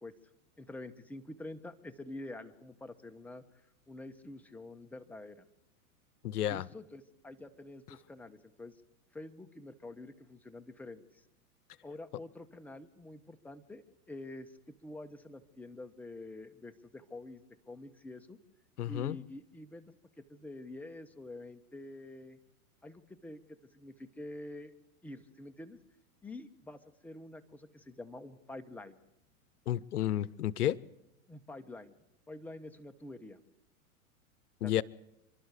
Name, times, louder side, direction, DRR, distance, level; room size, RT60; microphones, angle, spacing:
voice 1, 0.6-5.4 6.5-8.8 9.1-11.2 11.8-18.4 18.9-19.9 20.3-22.4 22.8-24.7 25.0-25.8 26.2-29.0 31.3-32.0 32.3-33.4 34.6-34.8, left 2 dB, 5° left, 1.0 m, -47 dB
voice 2, 6.2-6.7 18.8-19.2 29.7-30.8 34.6-34.8, left 12 dB, 90° left, 0.7 m, -31 dB
28.5 x 12.0 x 8.3 m
hypercardioid pair, 120°, 44 cm